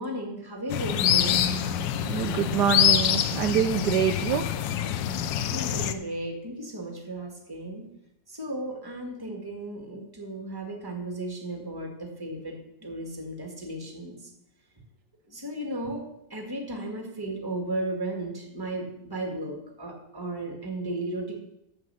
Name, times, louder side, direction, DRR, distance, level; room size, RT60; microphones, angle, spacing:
voice 1, 0.0-1.4 5.4-7.9 8.3-12.5 12.8-14.3 15.3-21.3, right 1 dB, 10° right, 2 dB, 1.7 m, -35 dB
sound 1, 0.7-5.9, left 10 dB, 80° left, 1.3 m, -25 dB
voice 2, 2.0-4.5, right 8 dB, 75° right, 6 dB, 1.2 m, -25 dB
7.4 x 7.1 x 6.7 m, 0.81 s
omnidirectional pair, 2.0 m